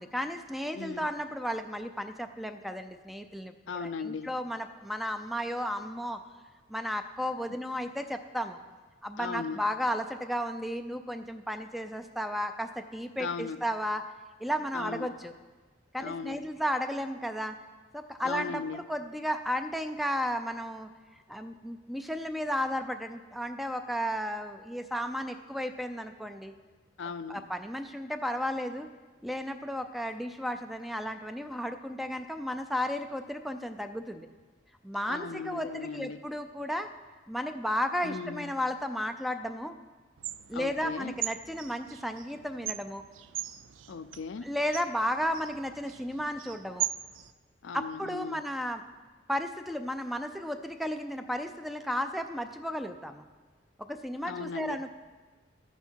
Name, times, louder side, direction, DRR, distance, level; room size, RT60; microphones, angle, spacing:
voice 1, 0.0-6.2 6.7-8.6 9.0-14.0 14.4-15.3 15.9-17.6 17.9-20.9 21.3-26.5 27.3-28.9 29.2-34.3 34.8-36.9 37.3-39.7 40.5-43.0 44.4-46.9 47.7-48.8 49.3-53.2 53.8-55.0, equal, ahead, 8 dB, 0.4 m, -33 dB
voice 2, 0.7-1.1 3.7-4.3 9.2-9.6 13.2-13.6 14.7-15.1 16.0-16.4 18.2-18.8 27.0-27.4 35.1-36.2 38.0-38.5 40.5-41.1 43.9-44.6 47.6-48.4 54.2-55.0, left 5 dB, 75° left, 12 dB, 0.4 m, -37 dB
sound 1, 40.2-47.3, right 13 dB, 80° right, 0.4 m, -40 dB
12.0 x 9.3 x 4.5 m, 1.3 s
head